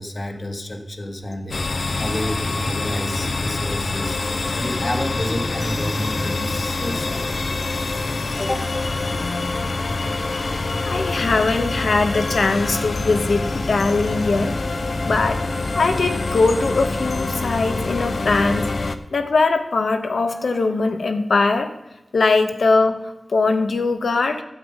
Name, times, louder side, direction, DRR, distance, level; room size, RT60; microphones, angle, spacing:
voice 1, 0.0-1.7 2.0-7.3 8.4-8.7, left 1 dB, 40° left, 5 dB, 1.5 m, -29 dB
sound 1, 1.5-19.0, left 3 dB, 65° left, 0.7 m, -25 dB
voice 2, 10.9-14.6 15.1-15.4 15.7-21.7 22.1-24.4, left 3 dB, 90° left, 7 dB, 1.2 m, -21 dB
12.5 x 8.2 x 5.4 m, 0.95 s
wide cardioid pair, 90°, 0 cm